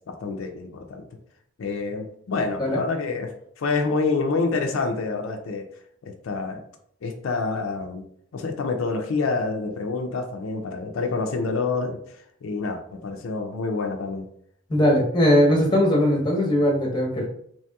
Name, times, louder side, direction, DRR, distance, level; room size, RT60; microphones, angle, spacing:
voice 1, 0.1-1.0 1.6-3.3 3.6-5.7 6.0-6.6 7.0-8.0 8.3-12.0 12.4-14.3, left 4 dB, 85° left, 4 dB, 0.4 m, -27 dB
voice 2, 14.7-17.3, left 1 dB, 20° left, -1 dB, 0.7 m, -20 dB
2.9 x 2.8 x 2.2 m, 0.67 s
head